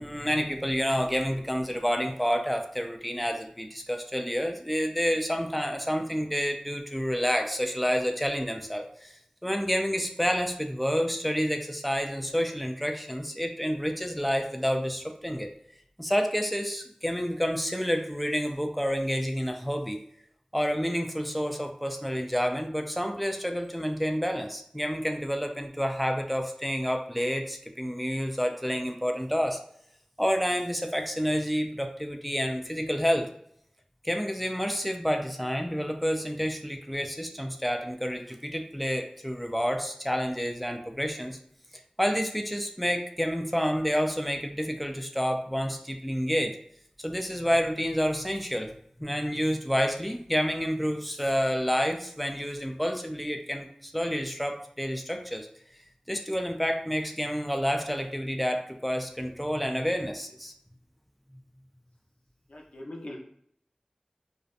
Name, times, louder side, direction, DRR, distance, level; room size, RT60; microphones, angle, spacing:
voice 1, 0.0-9.1 9.4-15.5 16.0-20.0 20.5-29.6 30.2-33.3 34.0-41.4 42.0-46.6 47.0-48.7 49.0-55.5 56.1-60.5, equal, ahead, 3 dB, 0.3 m, -29 dB
voice 2, 62.5-63.2, left 1 dB, 80° left, -1 dB, 0.5 m, -41 dB
2.6 x 2.1 x 2.4 m, 0.67 s
wide cardioid pair, 50°, 2 cm